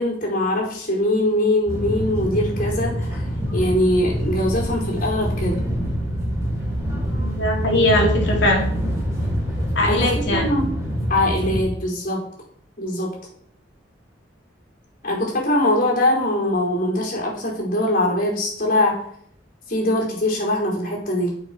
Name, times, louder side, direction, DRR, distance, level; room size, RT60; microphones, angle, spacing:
voice 1, 0.0-3.3 3.5-5.6 9.8-10.7 11.1-12.2 12.8-13.3 15.0-19.1 19.7-21.4, left 1 dB, 50° left, -2 dB, 4.8 m, -22 dB
sound 1, 1.7-11.6, equal, 15° right, 5.1 m, -25 dB
voice 2, 7.2-8.6 9.8-10.5, left 1 dB, 75° left, -1 dB, 3.6 m, -20 dB
9.2 x 7.1 x 6.2 m, 0.63 s
head